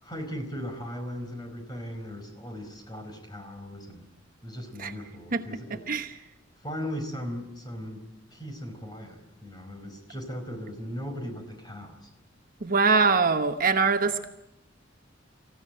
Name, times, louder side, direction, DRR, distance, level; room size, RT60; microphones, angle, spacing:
voice 1, 0.0-4.1 4.4-5.8 6.6-12.1, equal, 20° left, 4 dB, 4.6 m, -38 dB
voice 2, 5.7-6.1 12.6-14.3, right 4 dB, 45° right, 8 dB, 1.1 m, -23 dB
26.0 x 15.5 x 9.0 m, 0.86 s
head